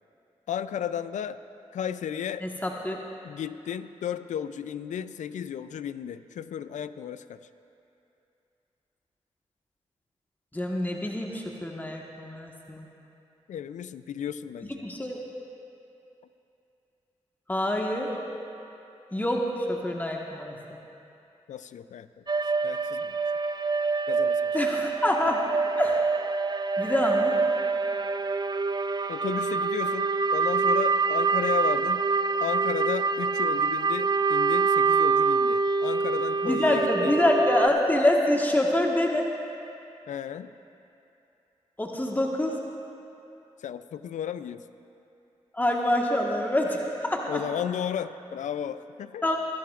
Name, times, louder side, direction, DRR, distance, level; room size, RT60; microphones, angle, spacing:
voice 1, 0.5-1.4 1.7-2.4 3.2-7.4 13.5-14.8 21.5-22.1 22.6-23.1 24.1-24.6 29.1-32.0 32.4-37.1 40.1-40.5 43.6-44.6 47.3-49.3, left 9 dB, 80° left, 13 dB, 0.4 m, -34 dB
voice 2, 2.4-3.0 10.5-12.9 14.8-15.2 17.5-18.1 19.1-20.6 24.5-25.4 25.7-26.1 26.8-27.4 36.4-39.2 41.8-42.5 45.5-47.4 49.2-49.4, left 1 dB, 15° left, -1 dB, 1.5 m, -26 dB
sound 1, 22.3-37.7, right 4 dB, 35° right, 0.5 m, -25 dB
28.5 x 11.5 x 2.5 m, 2.8 s
supercardioid pair, 40°, 12 cm